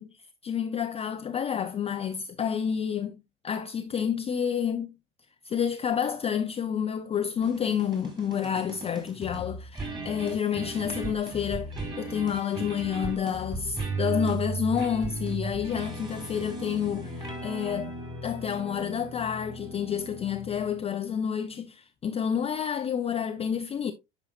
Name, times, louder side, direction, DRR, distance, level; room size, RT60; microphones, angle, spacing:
voice 1, 0.4-3.2 3.4-4.9 5.4-11.7 12.0-17.9 18.2-23.9, left 8 dB, 20° left, 0.5 m, -29 dB
sound 1, 7.4-20.9, right 3 dB, 15° right, 2.7 m, -36 dB
10.0 x 5.6 x 2.4 m
figure-of-eight pair, 75°, 34 cm